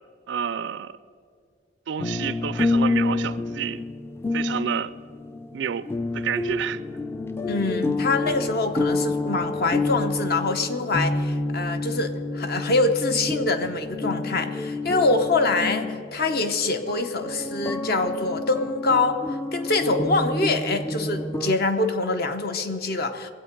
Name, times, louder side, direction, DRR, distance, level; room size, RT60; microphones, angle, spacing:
voice 1, 0.3-0.9 1.9-3.8 4.3-4.9 5.5-5.9 6.1-6.8, right 8 dB, 65° right, 0.4 m, -29 dB
sound 1, 2.0-21.5, left 2 dB, 15° left, 0.4 m, -28 dB
voice 2, 7.5-19.2 19.5-23.3, left 3 dB, 55° left, 0.9 m, -25 dB
21.5 x 8.2 x 5.3 m
head